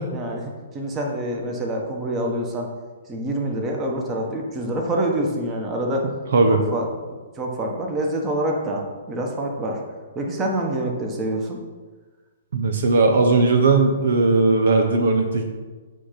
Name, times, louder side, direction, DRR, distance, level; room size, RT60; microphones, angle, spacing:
voice 1, 0.1-2.7 3.1-6.0 6.5-9.8 10.1-11.6, right 1 dB, 20° right, 0 dB, 1.4 m, -26 dB
voice 2, 12.5-15.4, right 3 dB, 65° right, 4 dB, 1.0 m, -18 dB
8.3 x 3.6 x 5.9 m, 1.4 s
hypercardioid pair, 135°, 0 cm